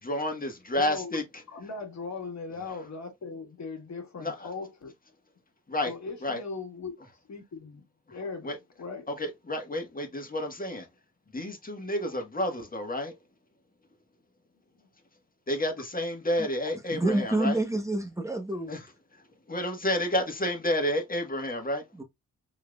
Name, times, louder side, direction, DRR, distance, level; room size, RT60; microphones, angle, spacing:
voice 1, 0.0-1.2 4.2-4.5 5.7-5.9 6.2-6.4 8.1-8.2 8.4-8.6 9.1-10.9 11.3-13.1 15.5-17.6 18.7-18.9 19.5-21.8, left 1 dB, 25° left, 1.6 m, -30 dB
voice 2, 0.8-1.1 1.5-4.9 5.8-6.9 7.3-9.1 14.7-14.8 17.1-17.3 18.5-18.6, left 4 dB, 60° left, 1.7 m, -39 dB
voice 3, 16.9-18.7 22.0-22.1, right 1 dB, 10° right, 1.1 m, -28 dB
4.7 x 3.3 x 2.4 m
supercardioid pair, 50°, 32 cm